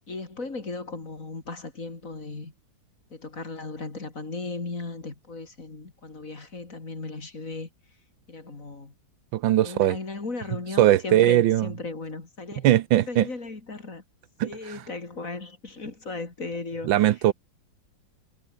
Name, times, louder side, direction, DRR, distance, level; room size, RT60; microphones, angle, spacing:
voice 1, 0.1-2.5 3.1-7.7 8.3-8.9 9.6-12.7 13.1-14.0 14.4-17.1, left 3 dB, 40° left, 3.7 m, -36 dB
voice 2, 9.3-10.0 10.8-11.7 12.6-13.3 14.4-14.8 16.8-17.3, right 13 dB, 80° right, 1.5 m, -20 dB
omnidirectional pair, 2.1 m